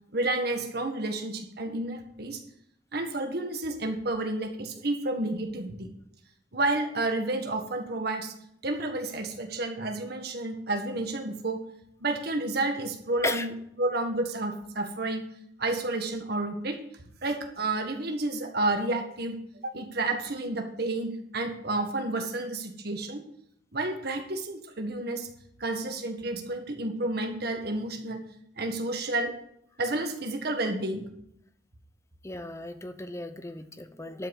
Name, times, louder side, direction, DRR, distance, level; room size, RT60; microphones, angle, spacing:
voice 1, 0.1-2.4 2.9-5.9 6.5-8.3 8.6-11.6 12.0-13.5 13.8-15.2 15.6-16.8 17.2-19.4 19.6-23.2 23.7-25.3 25.6-28.2 28.6-29.3 29.8-31.0, right 2 dB, 60° right, 4 dB, 1.7 m, -30 dB
voice 2, 32.2-34.3, left 2 dB, 15° left, 9 dB, 0.8 m, -35 dB
12.0 x 5.8 x 7.2 m, 0.72 s
head